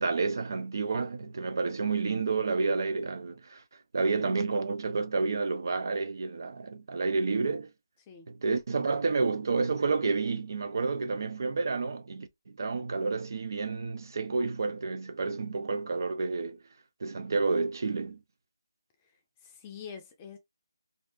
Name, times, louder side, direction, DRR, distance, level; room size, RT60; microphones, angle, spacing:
voice 1, 0.0-3.6 3.9-7.7 8.3-12.3 12.6-16.6 17.0-18.2, right 4 dB, 55° right, 0.6 m, -30 dB
voice 2, 19.4-20.4, left 7 dB, 15° left, 0.5 m, -45 dB
2.7 x 2.5 x 3.4 m
figure-of-eight pair, 165°, 2 cm